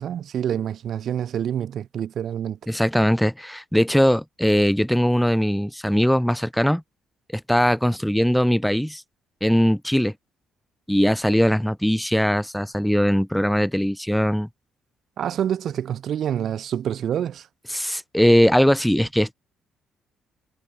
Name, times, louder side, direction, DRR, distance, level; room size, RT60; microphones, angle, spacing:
voice 1, 0.0-2.6 15.2-17.5, right 9 dB, 60° right, 0.9 m, -27 dB
voice 2, 2.7-6.8 7.3-9.0 9.4-10.1 10.9-14.5 17.7-19.3, equal, 5° left, 1.5 m, -20 dB
hypercardioid pair, 50°, 0 cm